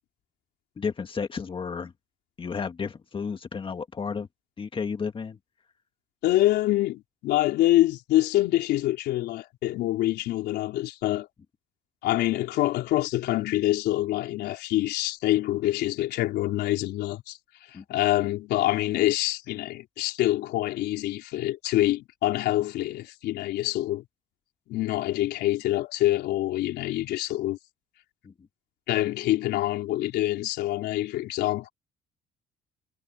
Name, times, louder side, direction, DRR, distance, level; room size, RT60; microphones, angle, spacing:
voice 1, 0.8-1.9 2.4-4.3 4.6-5.4 17.7-17.8 28.2-28.5, left 5 dB, 30° left, 1.8 m, -32 dB
voice 2, 6.2-11.3 12.0-17.4 17.7-24.0 24.7-27.6 28.9-31.7, left 15 dB, 80° left, 3.9 m, -26 dB
cardioid pair, 110°, 17 cm